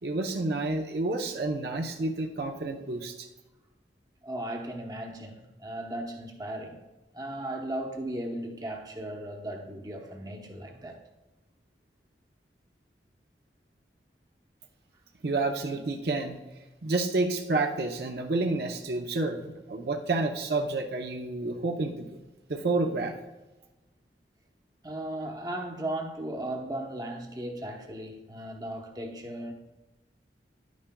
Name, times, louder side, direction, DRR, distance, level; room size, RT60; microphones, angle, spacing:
voice 1, 0.0-3.3 15.2-16.4 16.8-22.1 22.5-23.1, right 2 dB, 65° right, 0.7 m, -29 dB
voice 2, 4.2-6.8 7.1-11.0 24.8-29.5, right 1 dB, 20° right, 0.9 m, -36 dB
10.5 x 9.4 x 2.2 m
head